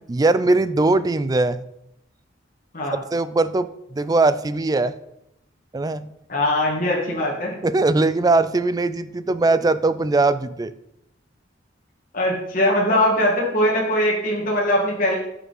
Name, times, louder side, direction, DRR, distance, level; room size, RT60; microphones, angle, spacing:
voice 1, 0.1-1.7 3.1-4.9 5.7-6.1 7.6-10.7, right 2 dB, 20° right, 14 dB, 0.3 m, -20 dB
voice 2, 6.3-7.6 12.1-15.2, left 1 dB, 45° left, -3 dB, 2.0 m, -21 dB
10.5 x 6.0 x 4.2 m, 0.80 s
head